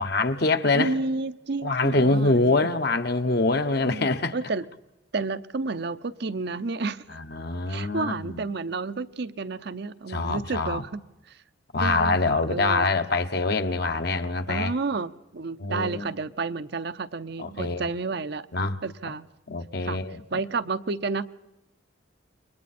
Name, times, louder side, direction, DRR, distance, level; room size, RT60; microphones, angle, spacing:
voice 1, 0.0-0.9 1.6-4.3 7.1-8.4 10.1-10.8 11.7-14.7 15.6-16.1 17.4-17.9 18.5-18.8 19.5-20.4, left 3 dB, 55° left, 1.2 m, -25 dB
voice 2, 0.7-2.7 3.5-4.6 5.1-7.2 7.7-11.4 11.8-12.9 14.5-18.5 18.8-19.3 19.8-20.0 20.3-21.2, right 3 dB, 60° right, 0.7 m, -31 dB
28.5 x 23.0 x 4.3 m
head